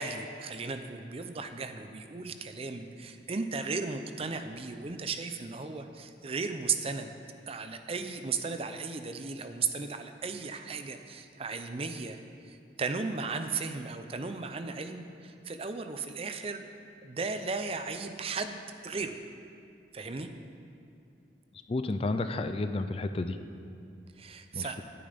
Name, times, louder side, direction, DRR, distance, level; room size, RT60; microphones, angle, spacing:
voice 1, 0.0-7.1 7.5-12.2 12.4-16.7 17.0-19.1 19.9-20.3 24.2-24.8, right 4 dB, 35° right, 8 dB, 0.5 m, -35 dB
voice 2, 21.7-23.4 24.5-24.8, left 2 dB, 30° left, 9 dB, 0.4 m, -31 dB
11.0 x 8.6 x 5.1 m, 2.5 s
head